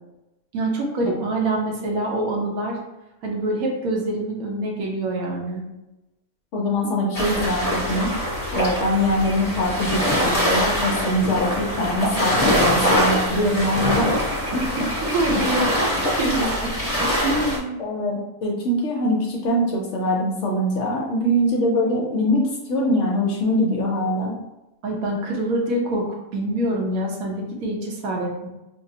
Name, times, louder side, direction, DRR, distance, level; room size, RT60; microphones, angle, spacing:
voice 1, 0.5-2.8 3.2-5.6 15.0-15.7 16.2-16.5 17.2-17.8 24.8-26.1 26.3-28.5, right 1 dB, 75° right, 0 dB, 1.2 m, -25 dB
voice 2, 6.5-8.1 8.5-14.1 14.5-14.6 17.8-24.4, left 1 dB, 65° left, -2 dB, 0.9 m, -23 dB
sound 1, 7.1-17.6, equal, 30° left, 1.1 m, -23 dB
5.0 x 2.0 x 2.7 m, 0.96 s
omnidirectional pair, 1.5 m